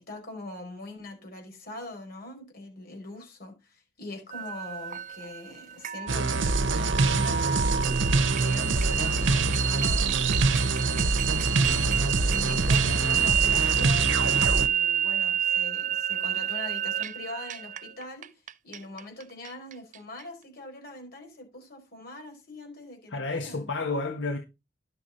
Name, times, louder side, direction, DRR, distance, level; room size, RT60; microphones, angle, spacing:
voice 1, 0.0-7.9 8.3-11.7 12.2-18.3 18.6-23.7, left 2 dB, 55° left, 5.1 m, -42 dB
sound 1, 4.3-20.2, right 9 dB, 45° right, 0.5 m, -29 dB
sound 2, 6.1-14.7, right 3 dB, 85° right, 0.8 m, -25 dB
voice 2, 11.6-12.1 23.1-24.4, left 3 dB, 75° left, 1.5 m, -31 dB
11.5 x 7.0 x 4.2 m
head